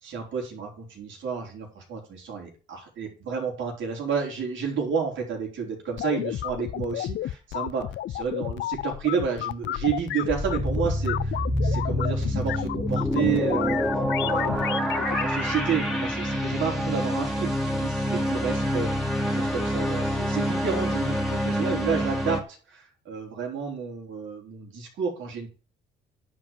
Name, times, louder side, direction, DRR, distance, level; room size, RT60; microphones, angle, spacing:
voice 1, 0.0-7.9 8.2-25.5, right 6 dB, 70° right, 0 dB, 4.4 m, -31 dB
sound 1, 6.0-15.2, left 13 dB, 70° left, 0.5 m, -32 dB
sound 2, 10.3-22.4, equal, ahead, 2.3 m, -27 dB
10.5 x 5.0 x 7.6 m, 0.37 s
cardioid pair, 90°, 20 cm